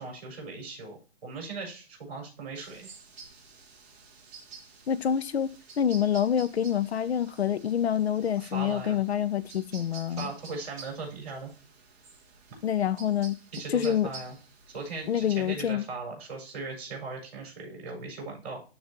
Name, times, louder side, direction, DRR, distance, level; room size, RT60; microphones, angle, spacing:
voice 1, 0.0-2.9 8.3-9.0 10.1-11.5 12.5-12.6 13.5-14.3 14.7-18.6, right 3 dB, 40° right, 4.4 m, -38 dB
sound 1, 2.5-15.7, right 4 dB, 15° right, 1.0 m, -50 dB
voice 2, 4.9-5.5 5.8-10.3 12.6-13.4 13.7-14.1 15.1-15.9, left 9 dB, 80° left, 0.8 m, -27 dB
12.0 x 4.1 x 3.0 m
hypercardioid pair, 175°, 32 cm